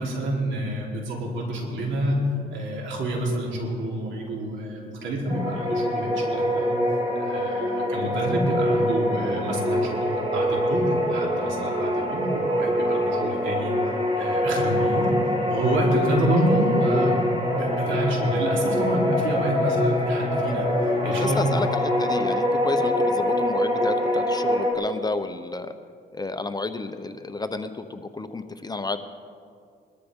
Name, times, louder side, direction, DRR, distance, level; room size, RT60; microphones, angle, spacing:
voice 1, 0.0-2.2 2.5-6.8 7.2-13.7 14.2-15.1 15.5-17.2 17.5-21.5, right 1 dB, 75° right, -2 dB, 3.7 m, -27 dB
sound 1, 5.3-24.7, left 1 dB, 30° right, 3.4 m, -24 dB
voice 2, 21.2-25.7 26.1-29.0, left 3 dB, 20° left, 9 dB, 0.8 m, -31 dB
21.0 x 13.0 x 3.7 m, 2.2 s
cardioid pair, 90°, 20 cm